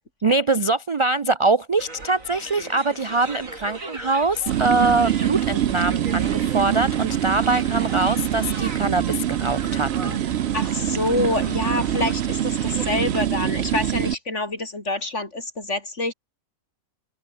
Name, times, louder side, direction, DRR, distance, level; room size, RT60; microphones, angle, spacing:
voice 1, 0.2-10.2, right 3 dB, 45° right, 0.4 m, -23 dB
sound 1, 1.8-13.3, right 3 dB, 80° right, 4.5 m, -38 dB
sound 2, 4.5-14.1, right 11 dB, 60° right, 0.8 m, -24 dB
voice 2, 10.5-16.1, left 2 dB, 60° left, 5.0 m, -27 dB
omnidirectional pair, 1.4 m